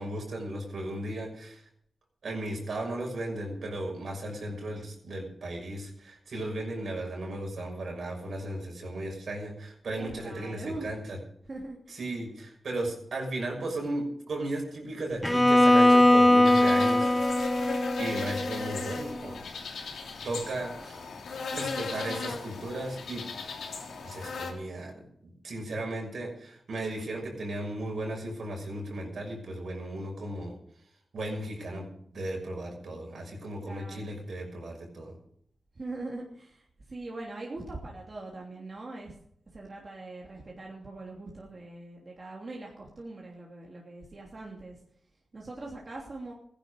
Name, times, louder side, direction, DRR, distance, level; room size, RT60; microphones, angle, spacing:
voice 1, 0.0-1.7 2.2-11.2 11.9-17.2 17.7-19.4 20.0-21.0 21.5-23.2 24.0-30.5 31.1-31.9 32.1-35.2, right 1 dB, 70° right, 1 dB, 6.1 m, -36 dB
voice 2, 9.9-10.9 11.5-12.1 33.5-34.2 35.7-39.2 39.5-44.8 45.3-46.3, right 2 dB, 45° right, -2 dB, 3.0 m, -42 dB
Bowed string instrument, 15.2-19.2, left 1 dB, 10° left, 1.0 m, -21 dB
sound 1, 16.4-24.5, left 4 dB, 90° left, 2.9 m, -37 dB
15.5 x 11.0 x 6.6 m, 0.69 s
cardioid pair, 60°, 0 cm